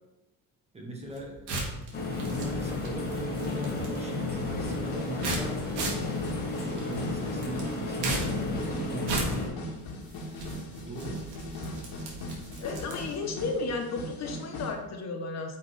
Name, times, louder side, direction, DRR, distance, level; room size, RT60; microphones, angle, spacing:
voice 1, 0.7-1.5 2.0-6.1 6.5-9.8 10.8-11.3, right 2 dB, 15° right, 0 dB, 1.2 m, -40 dB
sound 1, 1.0-13.3, right 2 dB, 80° right, 2.2 m, -38 dB
sound 2, 1.9-9.5, left 3 dB, 25° left, 1.6 m, -33 dB
sound 3, 4.4-14.7, left 1 dB, 65° left, 1.7 m, -39 dB
voice 2, 12.6-15.6, left 3 dB, 45° left, 3 dB, 1.0 m, -33 dB
9.0 x 5.8 x 3.3 m, 0.99 s
cardioid pair, 175°, 39 cm